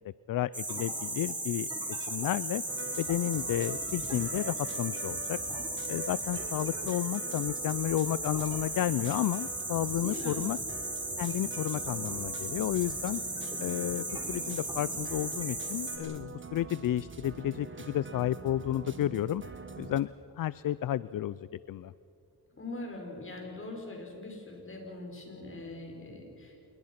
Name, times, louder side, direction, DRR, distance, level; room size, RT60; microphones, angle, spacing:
voice 1, 0.0-1.7 2.0-2.6 3.0-5.4 5.9-10.6 11.2-13.2 13.6-19.4 19.8-20.1 20.4-21.9, left 13 dB, 55° left, 18 dB, 0.5 m, -32 dB
sound 1, 0.5-16.0, right 1 dB, 10° right, 4.5 m, -36 dB
sound 2, 2.7-20.0, right 4 dB, 30° right, 1.6 m, -45 dB
voice 2, 10.0-10.4 22.6-26.6, left 2 dB, 30° left, 1 dB, 6.4 m, -42 dB
27.5 x 21.5 x 5.9 m, 2.6 s
cardioid pair, 95°, 40 cm